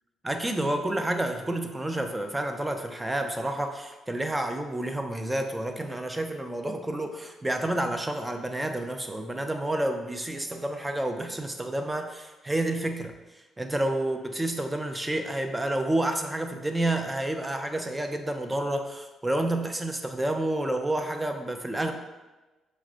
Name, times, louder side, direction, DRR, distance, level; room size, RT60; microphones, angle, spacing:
voice 1, 0.2-13.1 13.6-21.9, right 1 dB, 15° right, 5 dB, 0.4 m, -29 dB
5.6 x 2.1 x 2.5 m, 1.1 s
cardioid pair, 90°, 0 cm